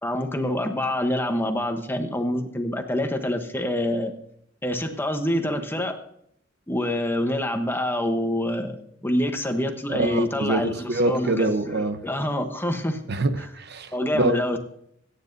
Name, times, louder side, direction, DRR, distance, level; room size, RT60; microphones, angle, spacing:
voice 1, 0.0-4.1 4.6-6.0 6.7-8.8 9.0-13.0 13.9-14.6, left 1 dB, 10° left, 6 dB, 1.0 m, -26 dB
voice 2, 9.9-12.0 13.1-14.3, right 2 dB, 55° right, 9 dB, 0.9 m, -25 dB
24.0 x 9.7 x 2.7 m, 0.72 s
head